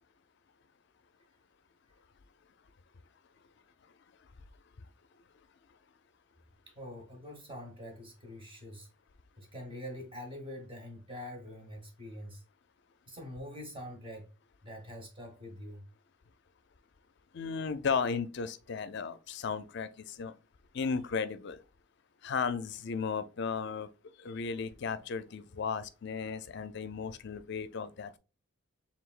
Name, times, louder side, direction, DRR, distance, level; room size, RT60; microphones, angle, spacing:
voice 1, 6.7-8.9 9.4-12.4 13.1-14.3 14.6-15.8, left 1 dB, 25° right, 1.2 m, -45 dB
voice 2, 17.3-20.3 20.7-21.6 22.2-23.9 24.2-28.2, left 5 dB, 55° left, 0.4 m, -35 dB
4.9 x 3.4 x 2.4 m
head